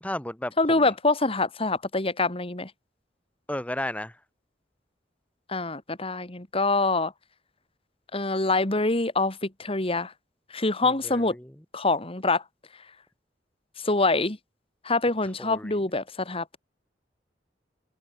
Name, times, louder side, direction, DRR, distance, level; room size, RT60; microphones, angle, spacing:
voice 1, 0.0-0.9 3.5-4.2 10.8-11.5 15.4-15.8, left 1 dB, 10° left, 1.4 m, -34 dB
voice 2, 0.6-2.7 5.5-7.1 8.1-10.1 10.5-11.4 11.7-12.4 13.8-14.4 14.8-16.6, left 3 dB, 35° left, 2.5 m, -25 dB
open air
head